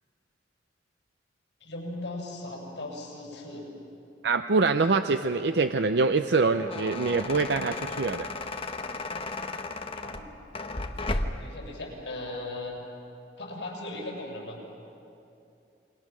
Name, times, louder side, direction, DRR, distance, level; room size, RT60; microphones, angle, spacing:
voice 1, 1.6-3.7 10.0-10.2 11.4-12.8 13.4-14.6, left 2 dB, 80° left, -2 dB, 7.2 m, -37 dB
voice 2, 4.2-8.3, right 4 dB, 70° right, 8 dB, 0.6 m, -24 dB
sound 1, 6.3-11.5, left 2 dB, 30° left, 1.1 m, -34 dB
29.0 x 22.5 x 6.2 m, 2.7 s
head